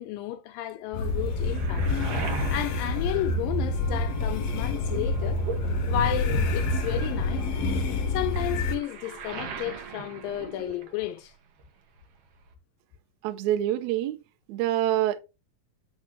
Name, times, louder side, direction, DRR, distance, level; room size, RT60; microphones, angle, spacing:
voice 1, 0.0-1.9 2.5-5.4 5.9-7.5 8.1-11.3, left 13 dB, 80° left, 2.4 m, -32 dB
sound 1, 0.9-8.8, left 2 dB, 65° left, 1.7 m, -27 dB
Waves surf, 0.9-4.1 4.4-11.3 11.6-12.5, right 6 dB, 60° right, 1.7 m, -41 dB
Wind instrument woodwind instrument, 1.9-10.7, equal, 15° right, 2.5 m, -50 dB
voice 2, 13.2-14.2 14.5-15.2, right 13 dB, 80° right, 1.7 m, -26 dB
9.9 x 4.1 x 3.1 m
omnidirectional pair, 4.0 m